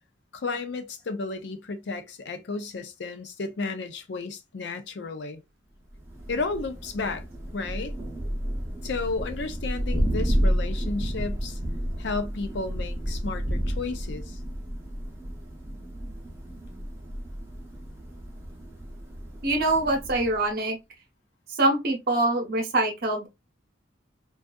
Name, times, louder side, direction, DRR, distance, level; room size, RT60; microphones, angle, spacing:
voice 1, 0.3-5.4 6.3-7.2 7.5-7.9 8.8-11.6 12.0-14.4, left 3 dB, 65° left, 0.5 m, -33 dB
Thunder, 5.9-20.5, equal, 15° right, 0.6 m, -31 dB
voice 2, 19.4-20.8 21.5-23.3, right 2 dB, 50° right, 0.8 m, -24 dB
2.6 x 2.3 x 2.2 m
head